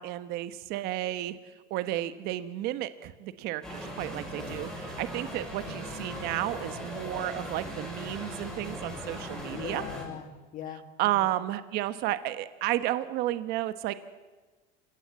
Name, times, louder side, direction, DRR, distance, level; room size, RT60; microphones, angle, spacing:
voice 1, 0.0-1.4 1.7-9.8 11.0-13.9, right 14 dB, 50° right, 12 dB, 1.2 m, -32 dB
sound 1, 3.6-10.0, equal, 5° left, 7.5 m, -39 dB
voice 2, 9.5-11.3, left 9 dB, 40° left, 8 dB, 2.2 m, -41 dB
28.5 x 17.5 x 8.3 m, 1.3 s
cardioid pair, 160°, 21 cm